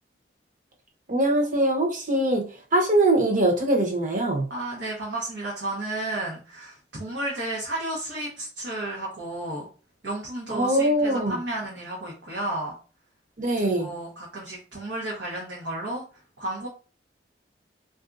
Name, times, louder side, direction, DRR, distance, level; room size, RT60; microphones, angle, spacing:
voice 1, 1.1-2.4 2.7-4.5 10.5-11.4 13.4-13.9, right 1 dB, 45° right, 0 dB, 0.9 m, -22 dB
voice 2, 4.5-9.6 10.0-12.8 13.6-16.0 16.4-16.7, right 1 dB, 90° right, -4 dB, 0.9 m, -32 dB
3.4 x 2.6 x 2.5 m, 0.37 s
head